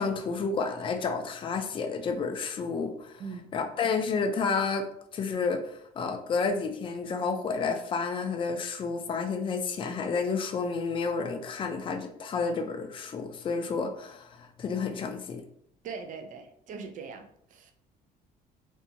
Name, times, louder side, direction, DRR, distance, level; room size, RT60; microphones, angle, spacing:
voice 1, 0.0-3.1 3.5-4.9 5.1-15.4, left 4 dB, 30° left, 5 dB, 0.4 m, -30 dB
voice 2, 15.8-17.7, right 5 dB, 50° right, 5 dB, 0.4 m, -41 dB
2.5 x 2.2 x 2.7 m, 0.70 s
cardioid pair, 110°, 17 cm